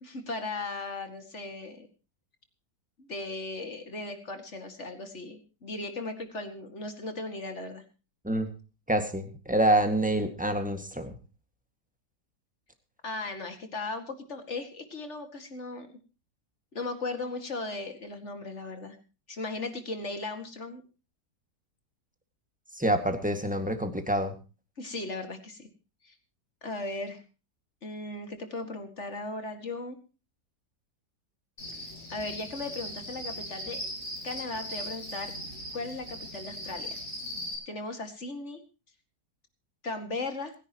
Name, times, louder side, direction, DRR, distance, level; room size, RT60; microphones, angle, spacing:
voice 1, 0.0-1.9 3.0-7.8 13.0-15.9 16.7-19.0 19.3-20.8 24.8-25.7 26.0-26.1 26.6-27.2 27.8-30.0 31.7-31.8 32.1-33.8 34.2-35.3 35.7-37.0 37.7-38.6 39.8-40.5, left 2 dB, 40° left, 7 dB, 2.4 m, -37 dB
voice 2, 8.9-11.2 22.7-24.3, right 1 dB, 5° right, 7 dB, 1.8 m, -27 dB
Cricket, 31.6-37.5, equal, 25° left, 8.0 m, -39 dB
26.5 x 10.5 x 3.0 m, 0.32 s
omnidirectional pair, 1.8 m